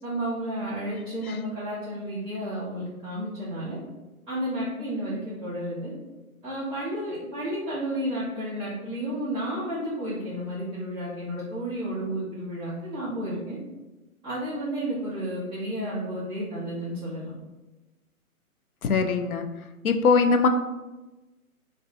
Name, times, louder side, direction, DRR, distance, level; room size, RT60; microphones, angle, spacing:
voice 1, 0.0-3.8 4.3-5.9 6.4-13.6 14.2-17.3, right 1 dB, 15° right, -11 dB, 1.5 m, -32 dB
voice 2, 18.8-19.4 19.8-20.5, left 5 dB, 70° left, 6 dB, 0.6 m, -21 dB
3.5 x 2.3 x 3.6 m, 1.1 s
hypercardioid pair, 145°, 44 cm